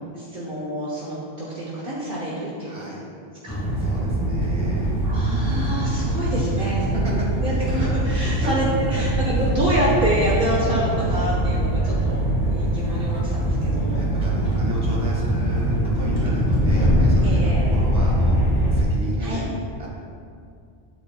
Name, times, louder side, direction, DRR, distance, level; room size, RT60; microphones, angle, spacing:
voice 1, 0.2-2.8 3.4-3.6 5.0-7.0 7.4-14.0 14.4-14.7 17.2-17.6 19.2-19.4, right 1 dB, 55° right, -6 dB, 1.4 m, -27 dB
voice 2, 2.6-3.1 3.8-5.0 6.5-6.7 7.0-8.0 8.4-8.6 8.8-9.2 13.9-19.5 19.8-19.9, equal, 35° right, -4 dB, 1.8 m, -34 dB
sound 1, 3.5-18.8, right 1 dB, 20° left, 1.9 m, -22 dB
11.5 x 8.4 x 2.3 m, 2.4 s
omnidirectional pair, 1.0 m